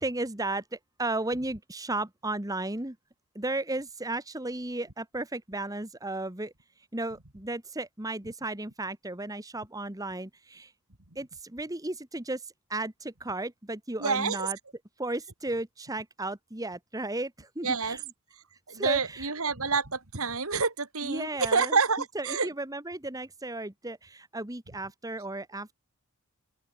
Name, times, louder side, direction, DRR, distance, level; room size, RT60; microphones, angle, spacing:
voice 1, 0.0-3.0 3.3-6.5 6.9-10.7 11.1-14.6 15.0-18.0 18.7-19.3 21.0-21.8 22.1-25.7, right 2 dB, 15° right, 1.4 m, -34 dB
voice 2, 14.0-14.5 17.6-18.0 18.7-22.5, right 4 dB, 70° right, 3.0 m, -28 dB
open air
head